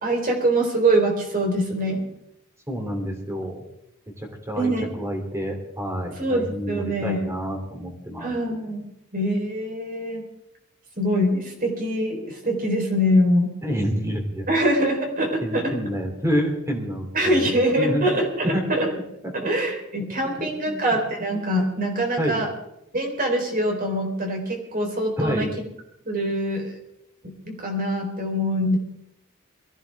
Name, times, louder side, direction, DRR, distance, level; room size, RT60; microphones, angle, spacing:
voice 1, 0.0-2.1 4.5-5.0 6.2-7.2 8.2-8.9 9.1-10.2 11.0-13.5 14.5-15.8 17.1-18.9 19.3-22.5 22.9-25.5 26.1-26.8 27.2-28.8, right 1 dB, 40° right, 1 dB, 4.1 m, -24 dB
voice 2, 2.7-3.6 4.2-4.7 5.0-8.3 13.6-14.5 15.4-17.4 17.8-18.2 18.5-18.9 20.1-21.0 22.2-22.4 25.2-25.5, equal, 15° right, 2 dB, 3.2 m, -28 dB
22.5 x 15.0 x 3.6 m, 0.81 s
head